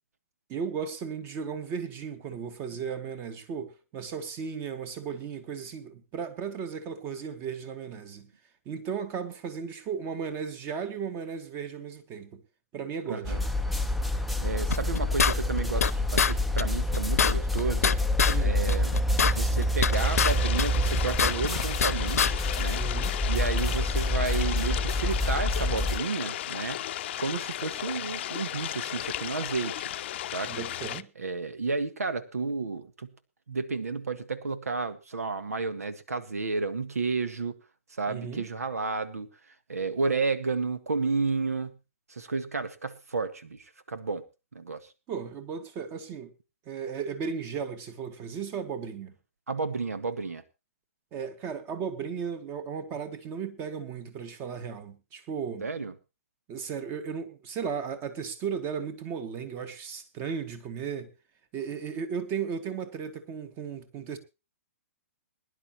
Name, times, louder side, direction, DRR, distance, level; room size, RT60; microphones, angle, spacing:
voice 1, 0.5-8.3 8.7-12.4 12.7-13.4 18.3-18.6 22.7-23.2 30.5-31.1 38.1-38.5 45.1-46.3 46.7-49.2 51.1-55.7 56.5-61.1 61.5-64.2, right 6 dB, 30° right, 1.9 m, -35 dB
voice 2, 13.1-13.4 14.4-17.9 18.4-18.9 19.2-22.8 23.2-26.8 27.2-29.9 30.3-30.6 31.2-33.1 33.5-37.6 38.0-39.3 39.7-41.7 42.1-44.2 44.5-44.9 49.5-50.4 55.6-55.9, right 4 dB, 90° right, 1.6 m, -31 dB
sound 1, 13.2-26.0, left 1 dB, ahead, 0.6 m, -27 dB
sound 2, 14.7-15.9 16.2-16.3 16.6-16.7 16.9-18.4 18.7-20.3 20.6-21.9 22.2-22.3, left 7 dB, 80° left, 0.8 m, -25 dB
sound 3, 19.9-31.0, left 13 dB, 50° left, 0.6 m, -35 dB
21.5 x 11.0 x 2.9 m
hypercardioid pair, 140°, 8 cm